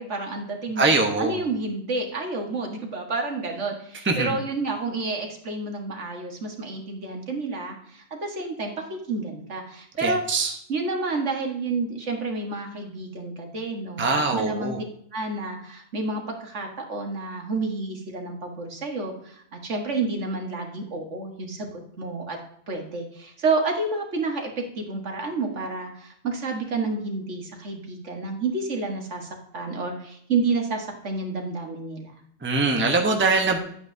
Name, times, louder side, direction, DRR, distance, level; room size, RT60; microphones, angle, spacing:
voice 1, 0.0-0.9 1.2-10.2 10.7-14.8 15.1-22.4 22.7-32.2, right 3 dB, 65° right, 2 dB, 1.8 m, -30 dB
voice 2, 0.8-1.4 4.0-4.4 10.0-10.5 14.0-14.8 32.4-33.6, right 3 dB, 10° right, 2 dB, 0.9 m, -22 dB
10.0 x 8.8 x 2.7 m, 0.68 s
omnidirectional pair, 1.3 m